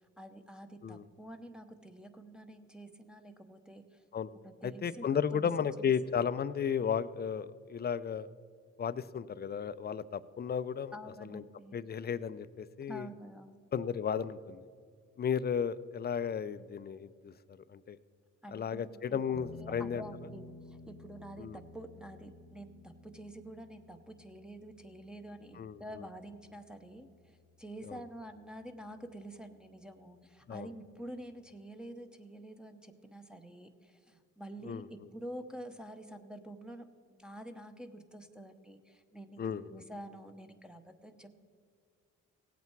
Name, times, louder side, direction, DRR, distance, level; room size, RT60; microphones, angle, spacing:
voice 1, 0.2-4.0 4.3-5.1 5.3-5.4 5.8-5.9 6.2-6.3 10.9-11.8 12.9-13.6 18.4-41.4, right 1 dB, 5° right, 4 dB, 0.8 m, -48 dB
voice 2, 4.6-8.3 8.8-10.9 11.2-11.4 11.7-13.1 13.7-14.7 15.2-18.0 18.5-20.0 21.4-21.6 25.6-26.0 27.9-28.0 30.5-30.7 34.6-34.9 39.4-39.8, left 7 dB, 35° left, 15 dB, 0.5 m, -34 dB
sound 1, 19.3-28.3, left 4 dB, 55° left, 0.9 m, -54 dB
17.5 x 8.3 x 4.6 m, 2.1 s
cardioid pair, 90°, 30 cm